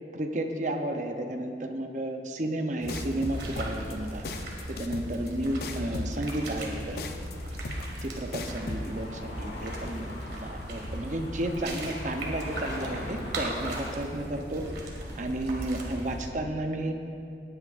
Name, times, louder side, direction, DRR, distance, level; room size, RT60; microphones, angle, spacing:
voice 1, 0.1-4.3 4.7-7.0 8.0-14.7 15.1-16.9, right 1 dB, 45° right, 5 dB, 0.7 m, -32 dB
sound 1, 2.8-16.3, right 1 dB, 70° right, 1.8 m, -38 dB
sound 2, 2.9-8.9, left 2 dB, 60° left, 0.7 m, -37 dB
sound 3, 5.4-14.0, left 1 dB, 75° left, 1.4 m, -43 dB
18.5 x 9.5 x 2.5 m, 2.5 s
head